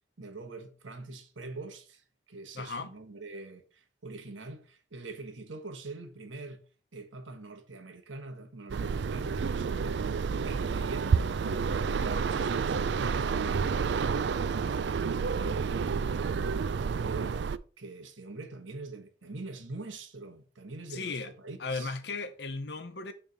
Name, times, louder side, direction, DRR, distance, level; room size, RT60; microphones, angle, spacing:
voice 1, 0.2-6.6 6.9-10.2 10.4-11.6 12.0-16.6 17.0-17.4 17.8-22.0, right 3 dB, 90° right, 1.2 m, -44 dB
voice 2, 2.5-2.9 20.9-21.3 21.6-23.1, left 3 dB, 60° left, 0.8 m, -36 dB
sound 1, 8.7-17.6, right 5 dB, 65° right, 0.4 m, -29 dB
6.7 x 3.5 x 6.2 m
head